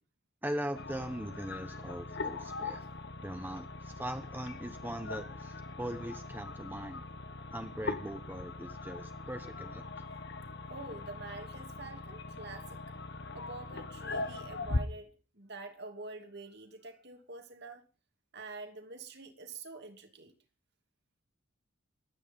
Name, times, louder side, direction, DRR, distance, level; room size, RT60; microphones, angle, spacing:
voice 1, 0.4-2.9 3.2-7.1 7.5-9.8, right 1 dB, 10° right, 1.2 m, -40 dB
sound 1, 0.7-14.8, left 3 dB, 55° left, 1.2 m, -41 dB
voice 2, 10.7-12.8 13.3-17.8 18.3-20.3, right 3 dB, 50° right, 2.9 m, -46 dB
23.5 x 9.7 x 5.4 m
head